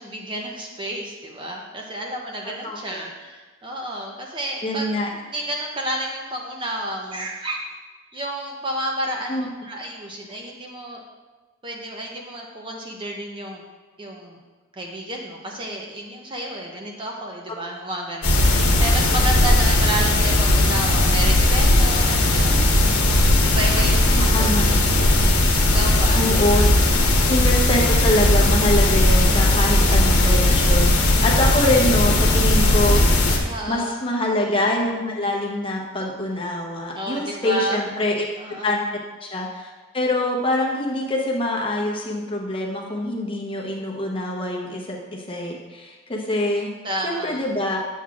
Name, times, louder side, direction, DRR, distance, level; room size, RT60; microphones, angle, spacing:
voice 1, 0.0-4.9 5.1-7.7 8.1-11.0 11.6-13.6 14.0-14.4 14.7-22.7 23.4-24.9 25.7-26.3 33.4-33.9 36.9-37.8 38.4-38.7 46.8-47.4, right 1 dB, 20° right, 0 dB, 0.6 m, -31 dB
voice 2, 2.4-3.0 4.6-5.1 9.3-9.5 19.5-19.6 23.8-24.6 26.1-26.6 27.3-33.0 33.7-38.3 38.6-38.8 39.2-46.7 47.0-47.8, left 1 dB, 25° left, -1 dB, 0.8 m, -24 dB
sound 1, 18.2-33.4, left 1 dB, 80° left, 1.1 m, -17 dB
7.8 x 7.2 x 2.4 m, 1.3 s
head